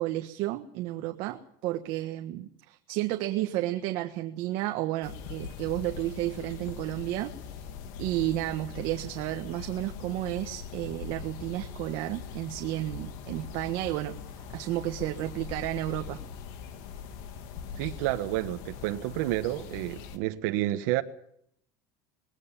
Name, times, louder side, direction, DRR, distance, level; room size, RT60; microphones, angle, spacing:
voice 1, 0.0-7.3 8.0-14.1 14.5-16.2, right 15 dB, 60° right, 1.4 m, -32 dB
sound 1, 5.0-20.2, left 7 dB, 75° left, 2.5 m, -42 dB
voice 2, 17.8-21.0, right 16 dB, 80° right, 1.3 m, -30 dB
21.0 x 17.5 x 7.3 m
cardioid pair, 160°, 10 cm